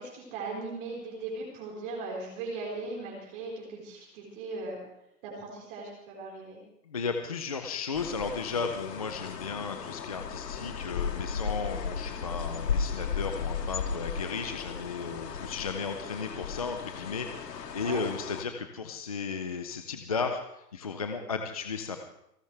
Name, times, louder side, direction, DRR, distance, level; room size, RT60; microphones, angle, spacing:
voice 1, 0.0-4.8 5.2-6.6 17.8-18.0, right 3 dB, 30° right, -2 dB, 4.4 m, -38 dB
voice 2, 6.9-20.4 20.7-22.0, left 5 dB, 25° left, 5 dB, 0.5 m, -34 dB
sound 1, 7.9-18.4, left 6 dB, 80° left, 2.3 m, -35 dB
28.0 x 12.0 x 3.3 m, 0.80 s
hypercardioid pair, 160°, 49 cm